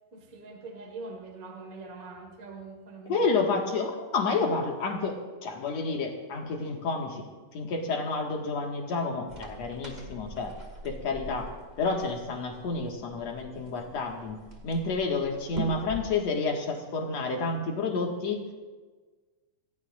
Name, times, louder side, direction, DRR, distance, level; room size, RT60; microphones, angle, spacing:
voice 1, 0.1-3.3, right 3 dB, 35° right, 2 dB, 1.7 m, -43 dB
voice 2, 3.1-7.3 7.5-10.5 10.8-11.5 11.8-18.4, left 3 dB, 60° left, 1 dB, 2.8 m, -30 dB
sound 1, 9.3-16.2, right 1 dB, 15° right, 1.8 m, -43 dB
26.5 x 17.0 x 2.6 m, 1.3 s
omnidirectional pair, 3.7 m